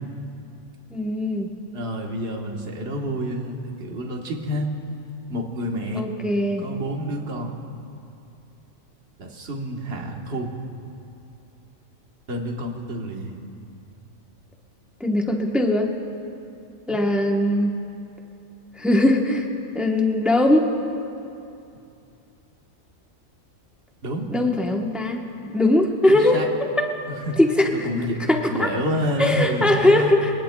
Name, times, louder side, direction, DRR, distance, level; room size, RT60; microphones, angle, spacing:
voice 1, 0.9-1.5 6.0-6.7 15.0-15.9 16.9-17.7 18.8-19.5 19.7-20.7 24.3-26.4 26.8-26.9 27.4-27.9 28.3-28.7 29.2-30.3, left 1 dB, ahead, 2 dB, 0.8 m, -20 dB
voice 2, 1.7-4.7 5.3-6.1 6.6-7.5 9.2-10.5 12.3-13.4 16.9-17.0 24.0-24.3 26.0-26.5 27.1-27.4 27.7-30.2, equal, 50° right, 0 dB, 1.6 m, -28 dB
24.5 x 18.5 x 2.3 m, 2.7 s
omnidirectional pair, 1.4 m